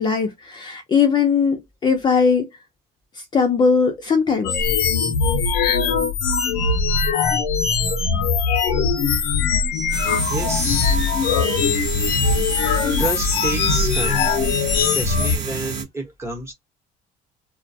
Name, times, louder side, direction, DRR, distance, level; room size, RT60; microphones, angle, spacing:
voice 1, 0.0-2.5 3.3-4.6, left 5 dB, 25° left, 0.5 m, -19 dB
sound 1, 4.4-15.4, left 5 dB, 80° left, 0.6 m, -21 dB
sound 2, 9.9-15.8, right 5 dB, 80° right, 1.0 m, -30 dB
voice 2, 10.3-11.0 13.0-14.2 14.8-16.5, right 1 dB, 15° right, 0.9 m, -29 dB
2.4 x 2.2 x 2.6 m
cardioid pair, 165°, 17 cm